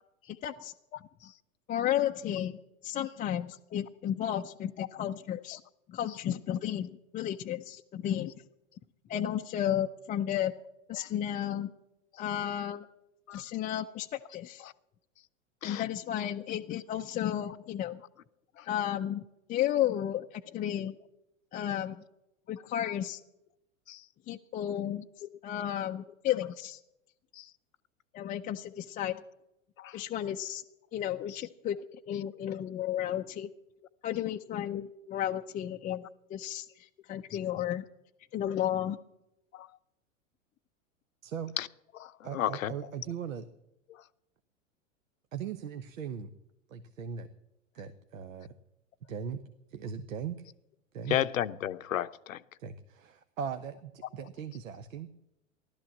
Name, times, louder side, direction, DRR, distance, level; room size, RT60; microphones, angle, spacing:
voice 1, 0.4-0.7 1.7-5.6 5.9-8.3 9.1-10.5 10.9-11.7 12.2-12.9 13.3-14.7 15.6-18.0 18.7-21.0 21.5-22.0 22.5-23.2 24.3-25.1 25.4-26.8 28.1-29.2 29.9-30.6 30.9-31.8 32.1-33.5 34.0-37.8 38.3-39.0, left 11 dB, 20° left, 0.5 m, -33 dB
voice 2, 0.9-1.3 4.8-4.9 5.5-5.6 10.9-11.1 13.3-13.4 14.6-14.7 15.6-15.8 18.6-18.7 21.5-21.6 23.9-24.0 25.2-25.3 27.3-27.5 29.8-30.0 31.3-31.4 39.5-39.7 41.6-41.7 41.9-42.9 43.9-44.0 51.1-52.4 54.2-54.3, left 11 dB, 75° left, 0.8 m, -34 dB
voice 3, 42.2-43.5 45.3-46.3 46.7-47.3 47.7-48.5 49.1-49.4 49.7-50.4 50.9-51.2 52.6-55.1, right 7 dB, 75° right, 1.1 m, -39 dB
16.0 x 12.0 x 7.3 m
hypercardioid pair, 100°, 40 cm